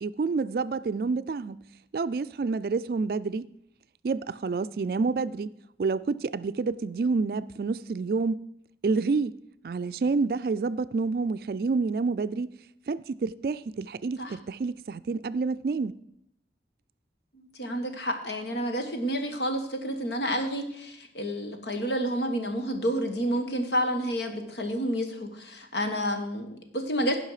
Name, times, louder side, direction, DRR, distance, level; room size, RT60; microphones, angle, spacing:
voice 1, 0.0-1.6 1.9-3.5 4.0-5.5 5.8-8.4 8.8-9.4 9.6-12.5 12.9-15.9, right 4 dB, 55° right, 0.3 m, -28 dB
voice 2, 17.3-27.2, equal, 75° left, 1.5 m, -30 dB
16.0 x 5.6 x 4.9 m
head